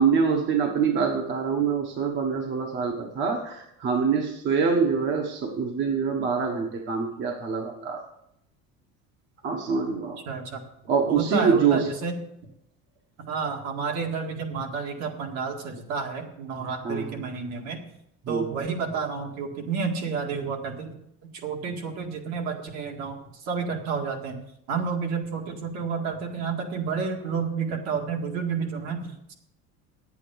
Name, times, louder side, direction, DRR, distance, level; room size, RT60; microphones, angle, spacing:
voice 1, 0.0-8.0 9.4-10.2 10.9-11.9 16.8-17.1 18.2-18.5, right 5 dB, 40° right, 2 dB, 1.2 m, -25 dB
voice 2, 10.3-10.6 11.1-12.2 13.3-17.8 18.3-21.0 21.3-29.3, right 5 dB, 60° right, 2 dB, 2.0 m, -30 dB
10.0 x 8.4 x 7.0 m, 0.78 s
cardioid pair, 175°, 30 cm